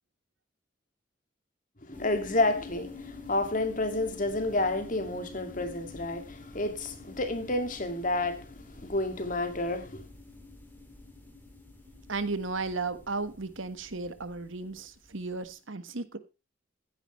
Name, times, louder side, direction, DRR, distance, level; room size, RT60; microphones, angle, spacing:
voice 1, 1.8-10.0, left 2 dB, 40° left, 2.2 m, -30 dB
sound 1, 1.9-15.3, left 3 dB, 10° left, 3.6 m, -48 dB
voice 2, 12.1-16.2, right 3 dB, 80° right, 1.4 m, -34 dB
15.5 x 10.0 x 3.1 m
head